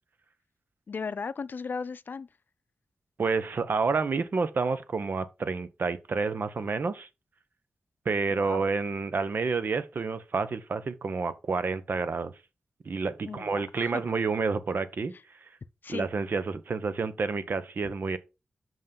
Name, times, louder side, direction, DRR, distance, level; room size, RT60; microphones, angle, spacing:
voice 1, 0.9-2.3 8.3-8.6 13.3-14.0 15.8-16.1, left 5 dB, 65° left, 0.5 m, -36 dB
voice 2, 3.2-7.1 8.1-12.3 12.8-15.1 15.9-18.2, right 4 dB, 65° right, 0.9 m, -29 dB
5.5 x 5.5 x 5.2 m
cardioid pair, 50°, 4 cm